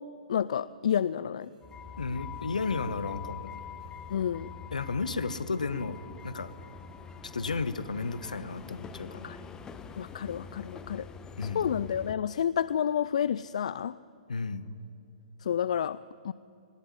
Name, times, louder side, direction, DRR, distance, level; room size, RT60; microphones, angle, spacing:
voice 1, 0.3-1.5 4.1-4.5 9.2-9.4 10.0-11.0 11.5-14.0 15.5-16.0 16.2-16.3, left 9 dB, 55° left, 18 dB, 0.4 m, -29 dB
sound 1, 1.4-11.0, right 3 dB, 75° right, 3.7 m, -57 dB
sound 2, 1.6-12.2, left 6 dB, 15° left, 1.1 m, -44 dB
voice 2, 2.0-3.5 4.7-6.5 7.2-9.2 11.4-11.7 14.3-14.7, left 4 dB, 75° left, 15 dB, 1.1 m, -33 dB
19.5 x 18.0 x 9.8 m, 2.6 s
figure-of-eight pair, 115°, 4 cm